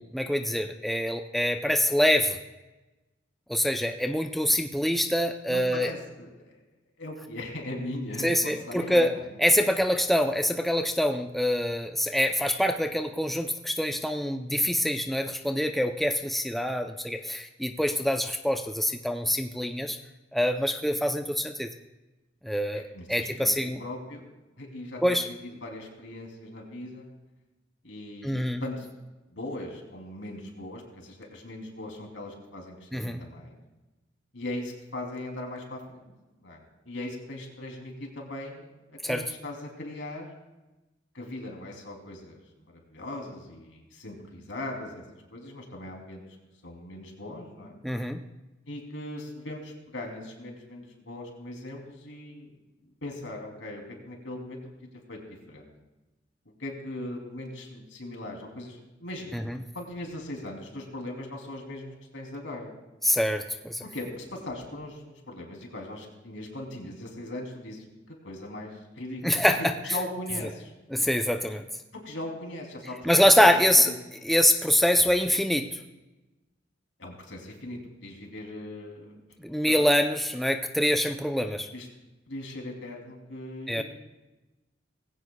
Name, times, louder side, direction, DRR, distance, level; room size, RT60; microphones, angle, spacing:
voice 1, 0.0-2.4 3.5-5.9 8.2-9.1 9.4-20.0 20.3-21.7 22.4-23.8 25.0-25.2 28.2-28.6 32.9-33.2 39.0-39.2 47.8-48.2 59.3-59.6 63.0-63.8 69.2-69.7 70.9-71.7 73.0-73.9 74.2-75.7 79.4-81.7 83.7-83.8, equal, ahead, 5 dB, 0.5 m, -25 dB
voice 2, 5.5-6.6 7.0-9.4 22.5-24.2 24.6-27.1 27.8-28.9 29.3-33.6 34.3-36.0 36.4-40.3 41.1-46.2 46.6-47.8 48.7-52.5 53.0-54.6 55.1-55.2 55.5-55.7 56.6-59.4 59.7-62.7 63.8-67.8 68.2-70.7 71.9-73.5 73.9-74.0 77.0-79.2 79.6-79.9 81.7-81.9 82.3-83.8, left 1 dB, 75° left, 1 dB, 3.0 m, -39 dB
19.5 x 16.0 x 2.3 m, 1.1 s
head